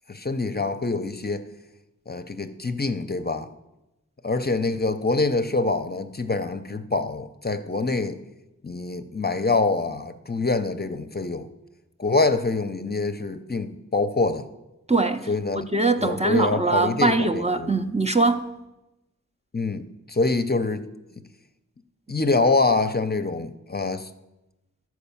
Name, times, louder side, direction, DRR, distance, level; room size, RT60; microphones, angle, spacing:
voice 1, 0.1-1.4 2.1-3.5 4.2-8.2 8.6-11.5 12.0-14.5 15.3-15.7 16.0-17.9 19.5-20.8 22.1-24.1, left 3 dB, 30° left, 0.6 m, -25 dB
voice 2, 14.9-15.3 15.5-18.5, right 3 dB, 20° right, 0.5 m, -22 dB
11.0 x 4.7 x 7.0 m
wide cardioid pair, 50°, 30 cm